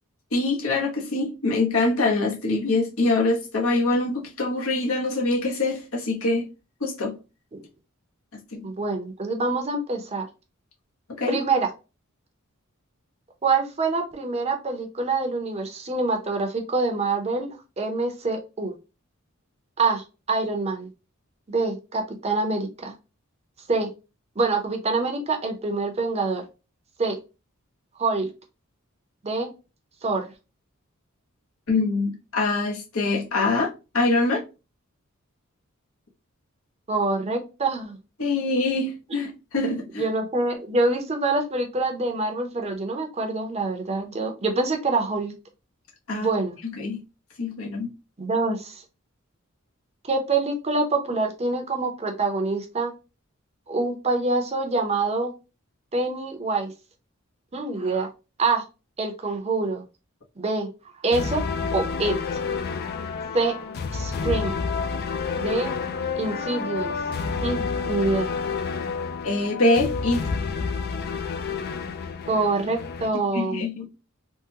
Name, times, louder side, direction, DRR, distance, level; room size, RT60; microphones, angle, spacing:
voice 1, 0.3-6.5 6.8-7.2 8.5-8.6 11.2-11.4 31.7-34.4 38.2-40.0 46.1-46.3 46.8-47.0 47.4-47.9 69.2-70.2 73.3-73.9, left 2 dB, 75° left, 1.0 m, -24 dB
voice 2, 8.6-10.3 11.3-11.7 13.4-18.7 19.8-20.9 21.5-22.9 23.6-23.9 24.3-26.4 27.0-27.2 27.9-28.3 29.2-29.5 30.0-30.3 36.9-38.0 40.0-45.3 46.1-46.6 48.2-48.8 50.0-52.9 53.7-55.3 55.9-56.7 57.5-58.1 58.4-58.6 59.0-59.9 60.4-61.4 61.7-62.1 63.3-63.6 63.9-64.6 65.3-65.7 66.2-67.0 67.4-68.3 72.3-73.6, right 3 dB, 30° right, 0.6 m, -26 dB
sound 1, 61.1-73.1, left 5 dB, 45° left, 0.4 m, -29 dB
3.6 x 2.1 x 2.7 m
head